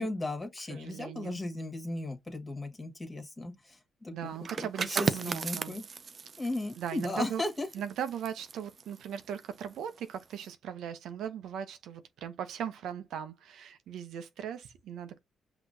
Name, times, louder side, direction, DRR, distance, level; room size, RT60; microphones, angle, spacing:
voice 1, 0.0-5.8 6.4-7.7, left 2 dB, 20° left, 1.7 m, -36 dB
voice 2, 0.7-1.4 4.1-5.8 6.8-7.4 7.7-15.2, right 9 dB, 75° right, 0.7 m, -39 dB
sound 1, 4.3-9.8 10.2-10.5, right 5 dB, 45° right, 0.5 m, -36 dB
5.9 x 3.0 x 2.7 m
cardioid pair, 90°, 0 cm